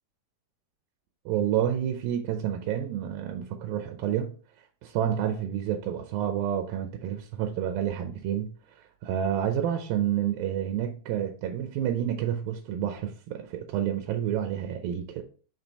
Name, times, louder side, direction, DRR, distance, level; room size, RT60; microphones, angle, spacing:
voice 1, 1.3-4.3 4.8-8.5 9.0-15.2, right 10 dB, 90° right, 2.5 m, -29 dB
5.7 x 4.5 x 4.1 m
omnidirectional pair, 4.0 m